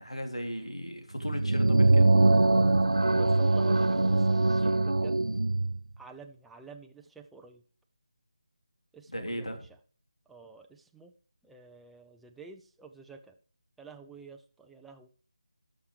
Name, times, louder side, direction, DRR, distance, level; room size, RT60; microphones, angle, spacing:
voice 1, 0.0-2.1 9.1-9.7, equal, 80° left, 5 dB, 2.8 m, -36 dB
sound 1, 1.2-5.8, right 2 dB, 70° right, 0.5 m, -23 dB
voice 2, 3.1-5.2 6.0-7.6 8.9-9.6 10.3-11.1 11.4-13.4 13.8-15.1, right 5 dB, ahead, 3 dB, 0.4 m, -49 dB
17.5 x 6.4 x 3.2 m, 0.43 s
figure-of-eight pair, 155°, 3 cm